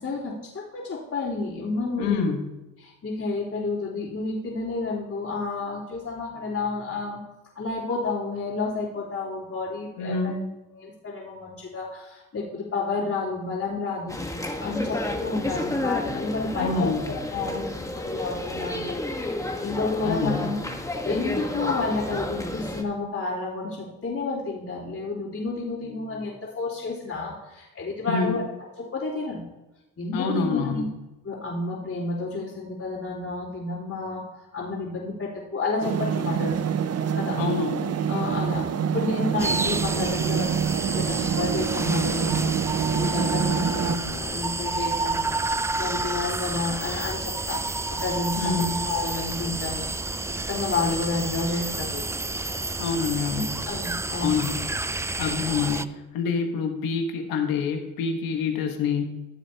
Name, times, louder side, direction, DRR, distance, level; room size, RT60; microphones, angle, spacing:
voice 1, 0.0-2.3 2.8-7.2 7.5-10.4 10.7-14.2 14.6-19.0 19.3-20.7 21.0-28.4 28.8-29.4 30.0-30.9 31.2-34.2 34.5-36.5 37.1-37.4 38.1-38.7 38.9-42.6 42.9-45.4 45.8-47.6 47.9-50.2 50.5-52.0 53.3-54.4 55.7-55.8, left 3 dB, 45° left, -10 dB, 3.4 m, -30 dB
voice 2, 2.0-2.5 10.0-10.5 16.6-17.1 20.0-20.5 28.1-28.4 30.1-30.9 37.4-37.9 48.4-48.7 52.8-53.6 54.2-54.6 55.2-59.1, left 5 dB, 90° left, 4 dB, 1.3 m, -27 dB
sound 1, 14.1-22.8, left 1 dB, 10° left, 1.3 m, -31 dB
sound 2, 35.8-44.0, right 7 dB, 45° right, 0.7 m, -26 dB
sound 3, 39.4-55.8, right 2 dB, 10° right, 0.3 m, -30 dB
15.0 x 7.3 x 2.9 m, 1.0 s
supercardioid pair, 55°, 34 cm